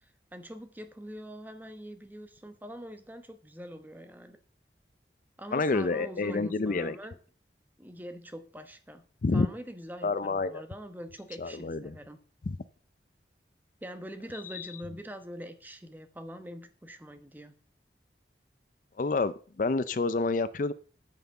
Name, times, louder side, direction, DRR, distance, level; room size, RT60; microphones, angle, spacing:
voice 1, 0.0-4.4 5.4-7.2 7.8-9.1 9.3-12.2 13.8-17.5, equal, 10° right, 8 dB, 1.0 m, -44 dB
voice 2, 5.5-7.0 9.2-9.5 10.0-10.6 11.4-12.0 12.5-12.6 14.5-14.7 19.0-20.7, left 3 dB, 45° left, 15 dB, 0.4 m, -28 dB
9.1 x 5.9 x 7.0 m, 0.40 s
head